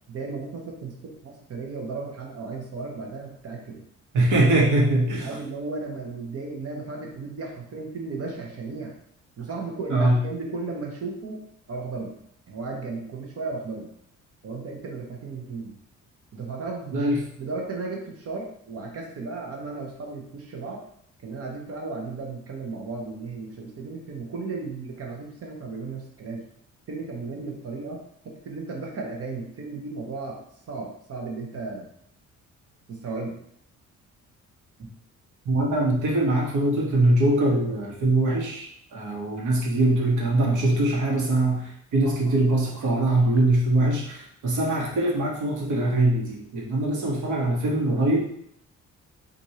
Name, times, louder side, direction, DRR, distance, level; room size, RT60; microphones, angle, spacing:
voice 1, 0.1-3.8 5.2-8.9 9.4-11.4 11.7-12.2 12.5-13.9 14.4-15.7 16.3-17.0 17.4-20.8 21.2-26.4 26.9-30.4 30.7-31.9 32.9-33.4, right 3 dB, 50° right, 0 dB, 0.9 m, -35 dB
voice 2, 4.1-5.3 9.9-10.2 16.9-17.2 35.4-38.7 38.9-48.3, right 1 dB, 70° right, -2 dB, 1.2 m, -22 dB
4.5 x 2.6 x 2.8 m, 0.69 s
cardioid pair, 115°, 31 cm